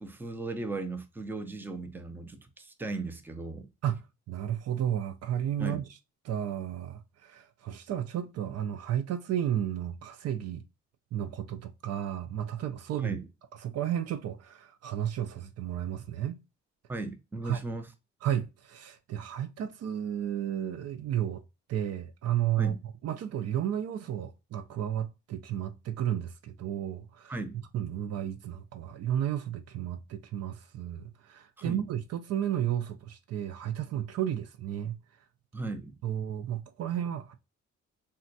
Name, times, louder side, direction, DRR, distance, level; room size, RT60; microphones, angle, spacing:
voice 1, 0.0-3.7 5.6-5.8 13.0-13.2 16.9-17.9 22.6-22.8 27.3-27.6 31.6-31.8 35.5-36.0, right 3 dB, 5° right, 0.5 m, -37 dB
voice 2, 3.8-5.9 6.2-10.6 11.1-13.2 13.6-16.4 17.4-17.6 18.2-21.4 21.7-22.8 23.0-27.4 27.7-35.0 36.0-37.4, right 10 dB, 55° right, 0.4 m, -33 dB
3.6 x 2.2 x 2.6 m
cardioid pair, 90°, 30 cm